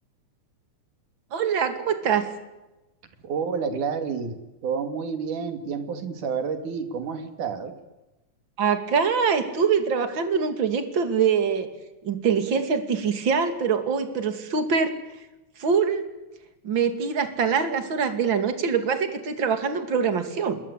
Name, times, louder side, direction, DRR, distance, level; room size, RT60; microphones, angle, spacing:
voice 1, 1.3-2.3 8.6-11.7 12.0-15.0 15.6-16.0 16.6-20.6, right 6 dB, 40° right, 8 dB, 3.1 m, -24 dB
voice 2, 3.2-7.7, right 6 dB, 75° right, 8 dB, 4.0 m, -29 dB
27.5 x 21.5 x 8.6 m, 1.0 s
omnidirectional pair, 3.5 m